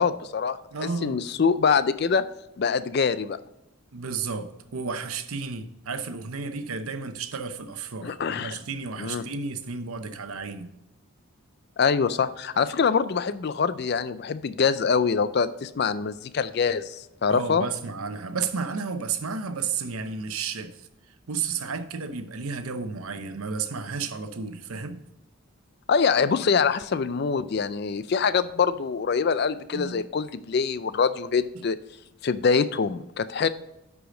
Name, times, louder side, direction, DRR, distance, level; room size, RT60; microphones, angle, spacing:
voice 1, 0.0-2.2 2.6-3.4 8.0-8.6 9.0-9.2 11.8-17.7 25.9-31.8 32.2-33.5, left 5 dB, 45° left, 0.4 m, -24 dB
voice 2, 0.7-1.2 3.9-10.7 17.3-20.9 21.3-25.0 29.7-30.0, right 5 dB, 80° right, 0.8 m, -32 dB
10.0 x 4.9 x 3.8 m
head